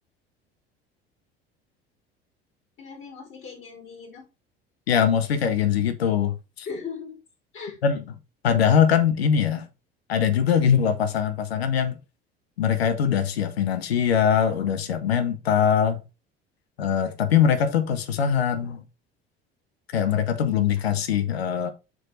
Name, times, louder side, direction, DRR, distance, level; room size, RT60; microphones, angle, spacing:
voice 1, 2.8-4.3 6.7-7.2 7.5-7.8, left 5 dB, 40° left, 3.8 m, -38 dB
voice 2, 4.9-6.7 7.8-8.0 8.4-9.7 10.1-12.0 12.6-16.0 16.8-18.8 19.9-21.7, left 8 dB, 85° left, 0.7 m, -22 dB
6.3 x 4.7 x 3.9 m
hypercardioid pair, 65°, 30 cm